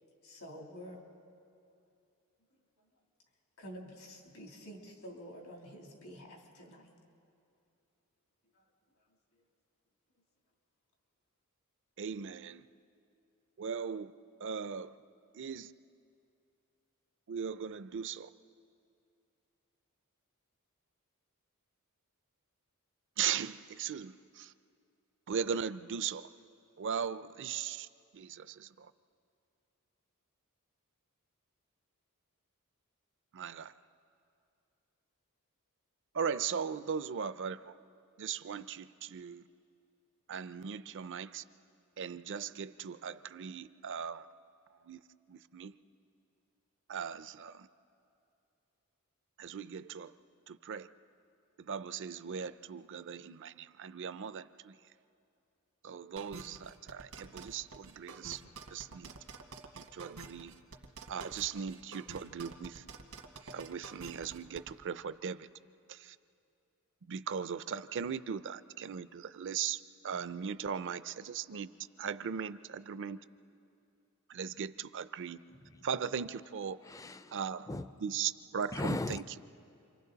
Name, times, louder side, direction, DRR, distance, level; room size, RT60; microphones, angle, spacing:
voice 1, 0.2-1.0 3.6-6.9 8.5-8.6, equal, 80° left, 0 dB, 3.2 m, -49 dB
voice 2, 12.0-12.7 13.6-14.1 14.4-15.0 15.3-15.7 17.3-18.3 23.2-24.5 25.3-26.3 26.8-27.9 28.1-28.9 33.3-33.7 36.1-37.7 38.2-39.4 40.3-41.4 42.0-44.3 44.8-45.0 45.3-45.7 46.9-47.7 49.4-50.1 50.5-50.9 51.6-54.8 55.8-58.4 58.7-59.1 59.7-60.5 61.1-62.8 63.5-65.5 65.9-66.2 67.0-71.7 72.0-73.2 74.3-75.4 75.8-76.8 77.3-77.7 78.0-79.2, right 7 dB, 55° right, 14 dB, 0.5 m, -38 dB
sound 1, 56.2-64.7, right 4 dB, 85° right, 1.5 m, -48 dB
voice 3, 76.9-77.4 77.7-77.9 78.7-79.4, left 2 dB, 15° left, 13 dB, 0.4 m, -37 dB
29.0 x 24.5 x 4.0 m, 2.6 s
head